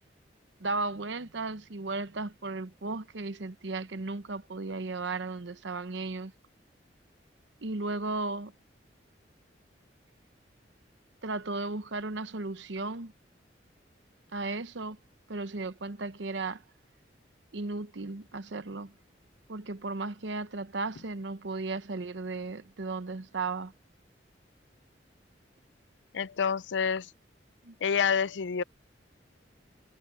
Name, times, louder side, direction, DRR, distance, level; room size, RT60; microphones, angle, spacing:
voice 1, 0.6-6.3 7.6-8.5 11.2-13.1 14.3-15.0 15.3-16.6 17.5-18.9 19.5-23.7 27.6-27.7, right 3 dB, 85° right, 0.9 m, -35 dB
voice 2, 26.1-27.1 27.8-28.6, left 6 dB, 85° left, 0.5 m, -28 dB
head